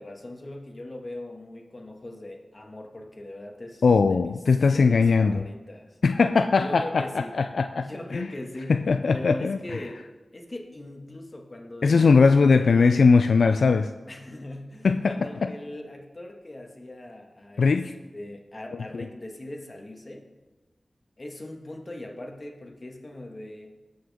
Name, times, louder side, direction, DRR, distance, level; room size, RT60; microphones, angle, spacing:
voice 1, 0.0-4.4 4.7-6.0 6.6-7.4 7.7-8.8 9.1-10.1 10.3-12.1 12.6-13.0 14.1-17.7 18.1-20.3 21.2-23.8, left 1 dB, 45° left, 2 dB, 1.8 m, -40 dB
voice 2, 3.8-5.4 6.0-7.9 8.1-8.3 8.7-9.6 11.8-13.9 14.8-15.5 17.6-17.9 18.9-19.1, left 4 dB, 90° left, 9 dB, 0.3 m, -20 dB
18.0 x 6.4 x 3.6 m, 1.2 s
cardioid pair, 40°, 0 cm